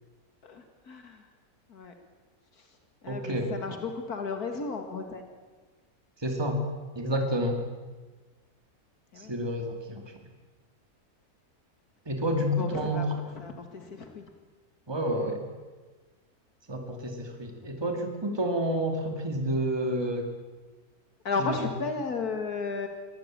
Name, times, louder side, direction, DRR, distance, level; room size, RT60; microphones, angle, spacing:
voice 1, 0.4-1.3 1.7-1.9 2.5-5.4 9.1-9.4 12.6-13.1 13.3-14.3 21.2-22.9, left 4 dB, 85° left, 5 dB, 2.5 m, -34 dB
voice 2, 3.1-3.5 6.2-6.6 6.9-7.6 9.2-10.1 12.1-13.0 14.9-15.4 16.7-20.3, equal, 15° right, 4 dB, 2.4 m, -29 dB
23.5 x 16.5 x 8.9 m, 1.3 s
omnidirectional pair, 1.6 m